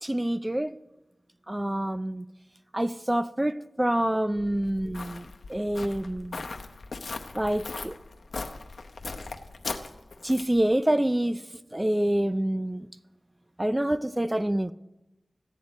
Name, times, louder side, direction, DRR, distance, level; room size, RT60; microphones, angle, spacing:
voice 1, 0.0-0.8 1.5-2.3 2.7-6.5 7.3-8.0 10.2-11.4 11.7-12.9 13.6-14.7, right 1 dB, 15° right, 0.4 m, -27 dB
Walk footsteps, 4.4-10.6, left 3 dB, 85° left, 0.7 m, -39 dB
14.5 x 9.5 x 4.1 m
wide cardioid pair, 80°, 0 cm